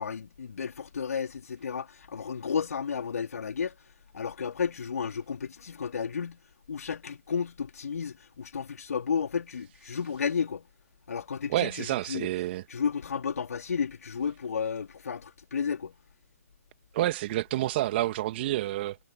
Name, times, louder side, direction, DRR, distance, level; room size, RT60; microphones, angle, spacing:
voice 1, 0.0-3.8 4.1-6.4 6.7-10.7 11.1-12.3 12.7-15.9, left 6 dB, 70° left, 3.6 m, -32 dB
voice 2, 11.5-12.6 16.9-19.0, right 15 dB, 40° right, 2.1 m, -28 dB
figure-of-eight pair, 135°, 9 cm